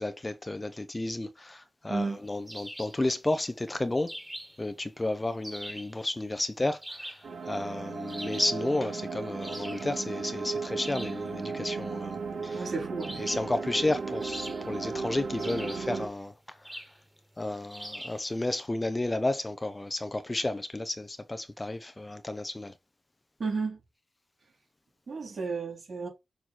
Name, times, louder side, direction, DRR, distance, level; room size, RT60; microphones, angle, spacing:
voice 1, 0.0-4.1 4.6-7.2 7.5-12.7 13.2-16.3 17.4-22.7, left 2 dB, 20° left, 0.7 m, -32 dB
voice 2, 1.9-2.2 12.5-13.2 23.4-23.8 25.1-26.1, right 4 dB, 55° right, 4.2 m, -33 dB
sound 1, 2.5-3.0 4.1-4.7 5.4-6.0 6.8-7.3 8.1-8.6 9.4-9.9 10.8-11.2 13.0-13.5 14.2-14.9 15.4-16.0 16.6-17.0 17.7-18.3, equal, 10° right, 1.7 m, -43 dB
sound 2, 7.2-16.1, right 4 dB, 85° right, 2.0 m, -36 dB
6.3 x 4.6 x 4.2 m
wide cardioid pair, 90°, 0 cm